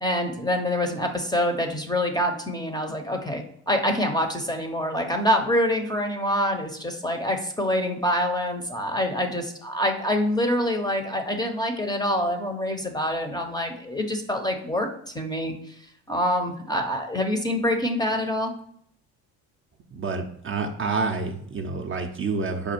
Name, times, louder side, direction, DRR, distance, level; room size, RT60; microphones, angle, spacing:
voice 1, 0.0-14.9 15.1-15.5 16.1-18.5, left 1 dB, 10° left, 4 dB, 0.6 m, -26 dB
voice 2, 19.9-22.7, right 4 dB, 30° right, 3 dB, 0.5 m, -28 dB
5.2 x 2.3 x 4.3 m, 0.66 s
supercardioid pair, 85°, 39 cm